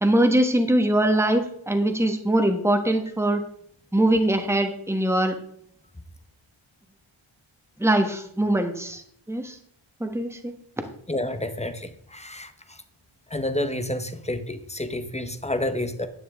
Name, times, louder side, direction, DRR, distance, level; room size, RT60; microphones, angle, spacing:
voice 1, 0.0-3.4 3.9-5.3 7.8-9.0 9.3-9.6 10.0-10.5, right 1 dB, 5° right, 5 dB, 1.3 m, -22 dB
voice 2, 11.1-12.5 13.3-16.1, left 1 dB, 15° left, 9 dB, 0.9 m, -29 dB
11.0 x 8.7 x 3.6 m, 0.66 s
wide cardioid pair, 90°, 49 cm